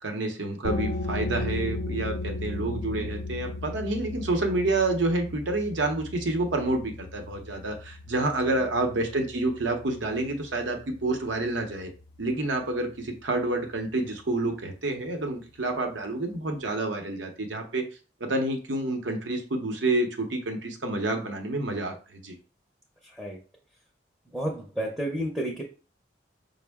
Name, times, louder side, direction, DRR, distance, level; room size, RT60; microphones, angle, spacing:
voice 1, 0.0-11.9 12.2-17.8 18.2-22.3, right 2 dB, 90° right, 4 dB, 0.8 m, -28 dB
sound 1, 0.6-12.0, left 2 dB, 50° left, 0.5 m, -36 dB
voice 2, 8.3-8.7 23.0-23.4 24.3-25.6, right 1 dB, 5° right, 0 dB, 0.5 m, -32 dB
5.1 x 2.0 x 3.4 m, 0.36 s
head